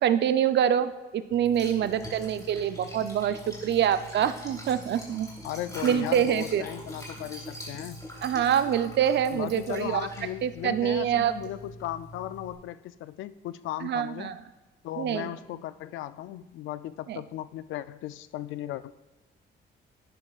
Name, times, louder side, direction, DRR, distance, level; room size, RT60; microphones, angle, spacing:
voice 1, 0.0-5.3 5.8-6.6 8.2-10.1 10.4-11.3 13.8-14.4 15.0-15.3 17.1-17.2, right 9 dB, 60° right, 12 dB, 0.6 m, -25 dB
Liquid, 1.3-12.5, equal, 15° left, 3.2 m, -43 dB
voice 2, 5.4-8.0 9.3-14.3 14.8-18.9, left 13 dB, 80° left, 15 dB, 0.4 m, -36 dB
11.5 x 9.7 x 2.4 m, 1.1 s
cardioid pair, 90°, 20 cm